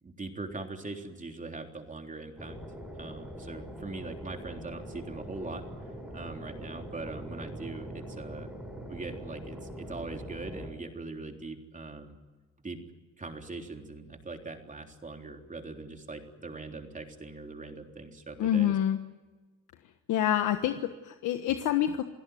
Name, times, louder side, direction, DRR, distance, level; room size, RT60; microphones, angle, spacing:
voice 1, 0.0-2.6 3.0-5.6 6.1-8.5 8.9-12.2 12.6-12.8 13.2-18.8, right 3 dB, 25° right, 3 dB, 3.7 m, -41 dB
sound 1, 2.4-10.7, equal, 5° right, 6.8 m, -43 dB
voice 2, 18.4-19.0 20.1-22.0, left 11 dB, 85° left, 7 dB, 1.4 m, -27 dB
28.5 x 17.0 x 9.3 m, 1.3 s
cardioid pair, 90°, 30 cm